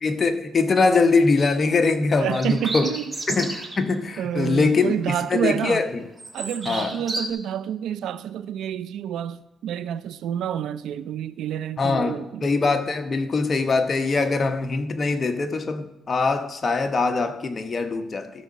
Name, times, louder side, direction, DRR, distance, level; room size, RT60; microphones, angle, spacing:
voice 1, 0.0-2.9 3.3-5.0 5.3-5.9 6.7-6.9 11.8-18.3, left 4 dB, 35° left, 0.9 m, -22 dB
sound 1, 1.2-1.4 2.2-3.8 4.2-4.4 4.8-5.6 5.9-7.3, right 2 dB, 25° right, 1.5 m, -33 dB
voice 2, 2.1-3.1 4.2-5.8 6.3-12.5, right 9 dB, 80° right, 0.4 m, -28 dB
13.5 x 6.3 x 4.1 m
cardioid pair, 90°, 0 cm